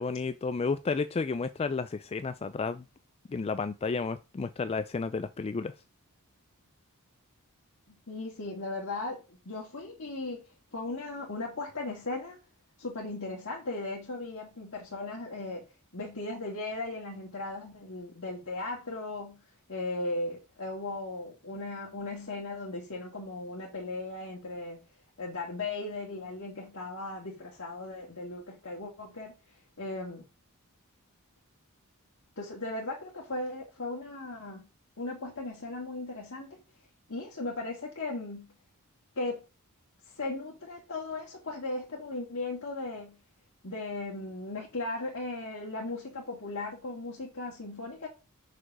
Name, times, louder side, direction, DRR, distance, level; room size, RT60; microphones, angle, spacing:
voice 1, 0.0-2.8 3.3-5.7, left 4 dB, 25° left, 0.3 m, -32 dB
voice 2, 7.9-10.4 10.7-12.4 12.8-15.6 15.9-19.4 19.7-24.8 25.2-29.3 29.8-30.2 32.4-34.7 35.0-36.6 37.1-38.5 39.2-39.4 40.1-43.2 43.6-48.1, left 2 dB, 65° left, 2.0 m, -37 dB
6.2 x 5.0 x 6.0 m
head